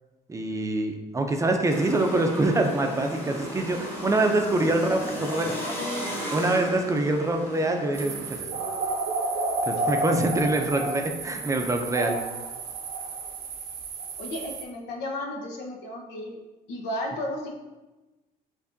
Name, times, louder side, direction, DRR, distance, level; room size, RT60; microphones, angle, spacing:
voice 1, 0.3-5.5 6.3-8.6 9.6-12.2, right 2 dB, 20° right, 4 dB, 0.5 m, -25 dB
sound 1, 1.7-8.4, equal, 10° left, 0.9 m, -35 dB
voice 2, 4.8-6.2 6.5-6.7 9.8-9.9 10.4-10.5 14.2-16.4 16.7-17.5, left 1 dB, 85° left, 0 dB, 0.9 m, -35 dB
sound 2, 7.9-14.6, right 2 dB, 65° right, 0.6 m, -31 dB
6.8 x 2.6 x 2.6 m, 1.1 s
cardioid pair, 110°, 17 cm